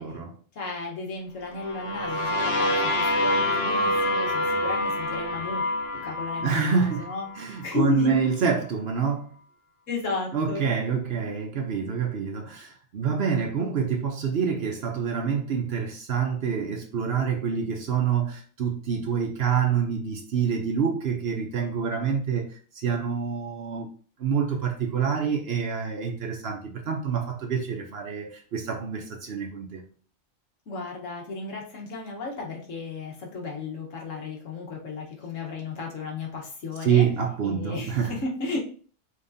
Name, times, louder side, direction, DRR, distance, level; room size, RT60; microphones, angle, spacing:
voice 1, 0.0-0.3 5.9-6.1 6.4-7.1 7.4-9.3 10.3-22.5 22.8-23.9 24.2-29.8 36.8-38.2, right 6 dB, 55° right, 0.8 m, -27 dB
voice 2, 0.5-5.6 6.0-8.1 9.9-10.7 30.7-37.1 37.4-38.6, left 3 dB, 75° left, 1.5 m, -34 dB
sound 1, 1.6-7.4, left 1 dB, 60° left, 0.9 m, -26 dB
5.2 x 3.1 x 2.6 m
omnidirectional pair, 1.3 m